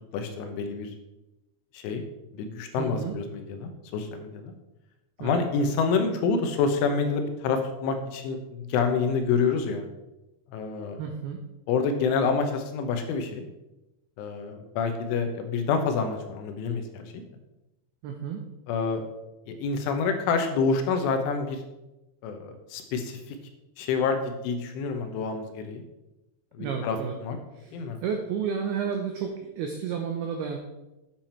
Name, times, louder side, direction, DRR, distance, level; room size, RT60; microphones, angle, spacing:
voice 1, 0.1-0.9 1.7-2.0 2.3-4.5 5.2-9.8 10.5-11.0 11.7-13.4 14.2-17.2 18.7-19.0 19.5-21.6 22.2-23.4 23.8-25.8 26.6-27.4 27.7-28.0, left 5 dB, 80° left, 6 dB, 3.4 m, -27 dB
voice 2, 2.8-3.2 5.2-5.4 11.0-11.4 18.0-18.4 26.6-27.1 27.5-27.8 28.0-30.6, right 7 dB, 90° right, 4 dB, 2.2 m, -31 dB
9.7 x 7.3 x 4.4 m, 0.99 s
omnidirectional pair, 5.6 m